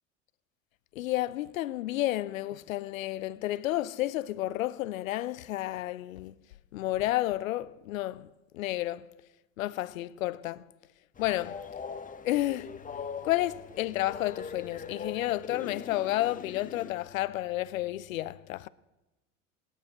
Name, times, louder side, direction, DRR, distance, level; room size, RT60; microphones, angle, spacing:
voice 1, 0.9-6.3 6.7-9.1 9.6-10.6 11.2-11.5 12.2-12.8 13.2-18.7, left 15 dB, 80° left, 0.6 m, -31 dB
Train, 11.2-16.9, left 6 dB, 20° left, 1.0 m, -42 dB
18.0 x 9.9 x 7.9 m
hypercardioid pair, 80°, 40 cm